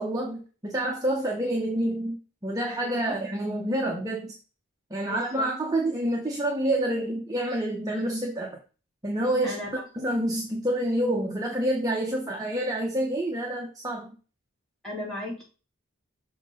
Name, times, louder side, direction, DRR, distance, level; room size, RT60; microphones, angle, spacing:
voice 1, 0.0-4.3 4.9-8.6 9.0-9.6 9.9-14.2, right 1 dB, 15° right, -1 dB, 0.8 m, -28 dB
voice 2, 2.8-3.2 5.0-5.5 9.4-9.8 14.8-15.4, left 1 dB, ahead, -5 dB, 2.6 m, -36 dB
6.3 x 3.7 x 5.3 m, 0.35 s
head